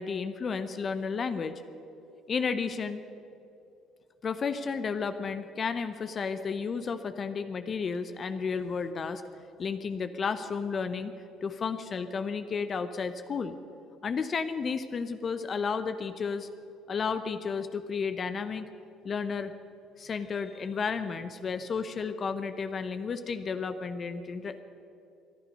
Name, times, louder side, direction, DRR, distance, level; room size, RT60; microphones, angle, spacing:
voice 1, 0.0-1.5 2.3-3.0 4.2-9.2 9.6-11.1 11.4-13.5 14.0-16.5 16.9-18.7 19.0-19.5 20.0-24.6, left 5 dB, 40° left, 10 dB, 0.8 m, -32 dB
21.5 x 11.0 x 5.4 m, 2.7 s
hypercardioid pair, 65°, 0 cm